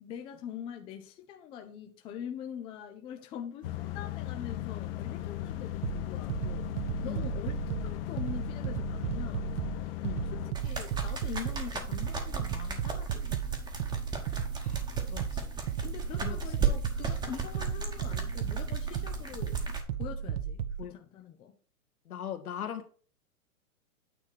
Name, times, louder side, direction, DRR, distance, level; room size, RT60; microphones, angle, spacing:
voice 1, 0.0-9.5 10.2-13.4 15.8-19.6 20.0-21.6, left 9 dB, 10° left, 0.5 m, -43 dB
sound 1, 3.6-10.5, left 13 dB, 40° left, 0.9 m, -37 dB
sound 2, 5.8-20.8, right 8 dB, 45° right, 0.9 m, -35 dB
voice 2, 7.0-7.3 10.0-10.3 14.5-15.5 16.2-16.4 20.8-21.0 22.1-22.9, left 9 dB, 75° left, 1.7 m, -40 dB
sound 3, 10.5-19.8, right 4 dB, 10° right, 1.2 m, -36 dB
9.1 x 3.5 x 6.0 m
hypercardioid pair, 135°, 44 cm